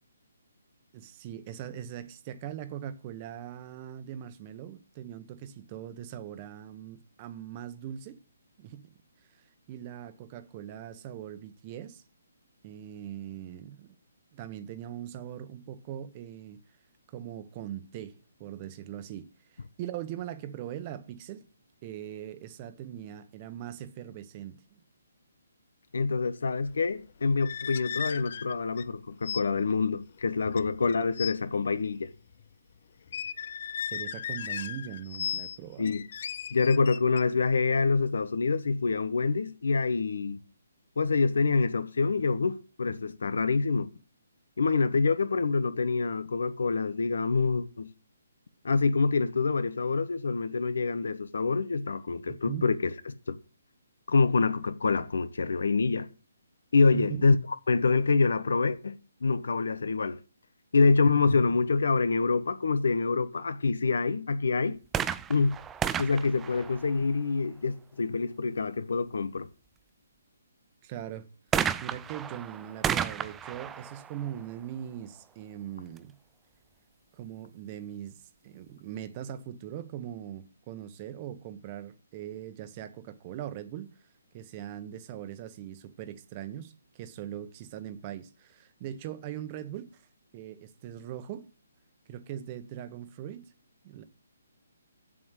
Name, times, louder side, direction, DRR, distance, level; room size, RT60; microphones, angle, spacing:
voice 1, 0.9-8.2 8.6-8.8 9.7-12.0 12.6-13.9 14.3-16.6 17.1-21.4 21.8-24.8 33.9-36.0 52.3-52.7 56.9-57.3 70.8-71.3 71.8-76.1 77.1-83.9 84.3-90.0 90.3-91.5 92.1-93.5 93.8-94.0, right 10 dB, 30° right, 1.2 m, -41 dB
voice 2, 25.9-32.1 35.8-36.0 36.5-40.4 41.0-43.9 44.6-47.9 48.6-52.8 53.3-53.4 54.1-56.1 56.7-57.4 57.7-59.0 59.2-60.2 60.7-64.8 65.3-65.6 66.0-69.5, left 4 dB, 75° left, 1.1 m, -26 dB
sound 1, 27.3-28.9 29.2-29.4 29.7-29.9 30.5-31.4 33.1-35.6 35.9-37.2, left 8 dB, 50° left, 0.6 m, -36 dB
sound 2, 64.9-67.5 71.5-75.2 76.0-76.1, right 8 dB, 10° right, 0.4 m, -33 dB
7.6 x 7.6 x 8.2 m
hypercardioid pair, 150°, 0 cm